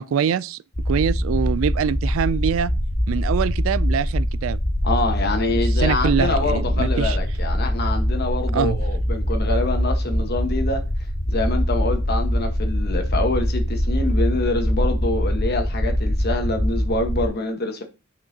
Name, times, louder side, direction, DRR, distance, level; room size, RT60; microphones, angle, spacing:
voice 1, 0.0-2.7 3.1-4.6 5.5-7.2 8.5-8.8, right 7 dB, 80° right, 0.3 m, -24 dB
sound 1, 0.7-17.3, equal, 25° left, 0.8 m, -23 dB
voice 2, 4.8-10.8 11.3-17.8, left 2 dB, 50° left, 1.2 m, -25 dB
8.8 x 5.5 x 2.7 m
head